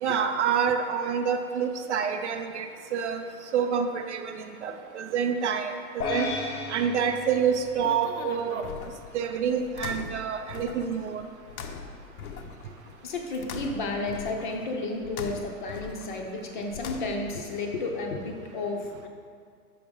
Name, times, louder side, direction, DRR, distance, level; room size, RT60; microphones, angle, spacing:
voice 1, 0.0-3.3 3.5-5.8 6.1-6.3 6.7-8.7 9.1-11.2, right 7 dB, 50° right, 6 dB, 0.5 m, -27 dB
sound 1, 6.0-8.5, left 3 dB, 85° left, 1.1 m, -34 dB
sound 2, 7.3-17.4, left 5 dB, 70° left, 0.7 m, -41 dB
voice 2, 13.0-19.1, left 2 dB, 35° left, 2 dB, 0.6 m, -32 dB
5.9 x 5.1 x 5.3 m, 2.1 s
hypercardioid pair, 160°, 45 cm